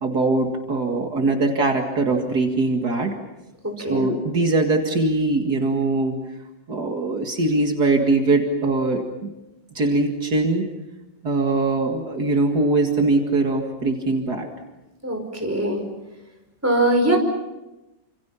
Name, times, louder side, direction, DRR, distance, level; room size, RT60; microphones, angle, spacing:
voice 1, 0.0-3.1 3.8-6.2 6.7-9.3 9.8-10.7 11.2-14.5, right 2 dB, 60° right, 3 dB, 2.6 m, -21 dB
voice 2, 15.0-15.8 16.6-17.2, right 1 dB, 10° right, 2 dB, 5.2 m, -21 dB
28.5 x 27.0 x 5.8 m, 1.0 s
omnidirectional pair, 1.9 m